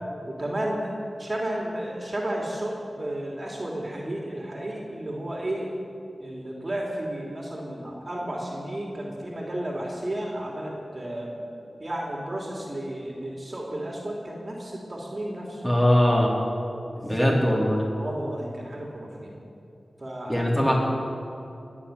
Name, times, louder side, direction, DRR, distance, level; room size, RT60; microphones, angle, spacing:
voice 1, 0.3-0.9 1.2-5.7 6.2-11.4 11.8-15.6 17.0-17.4 18.0-19.4 20.0-20.5, right 1 dB, 40° right, -2 dB, 2.9 m, -33 dB
voice 2, 15.6-16.3 17.0-17.9 20.3-20.8, equal, 15° left, -4 dB, 4.4 m, -21 dB
20.5 x 7.2 x 9.2 m, 2.7 s
cardioid pair, 50°, 0 cm